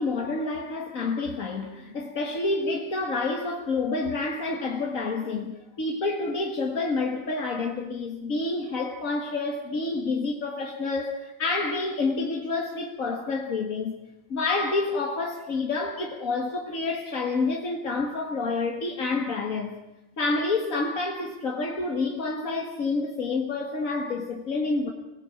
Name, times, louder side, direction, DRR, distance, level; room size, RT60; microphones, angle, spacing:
voice 1, 0.0-14.0 14.3-19.8 20.2-24.9, left 3 dB, 90° left, 2.2 m, -28 dB
24.5 x 17.0 x 8.9 m
omnidirectional pair, 1.4 m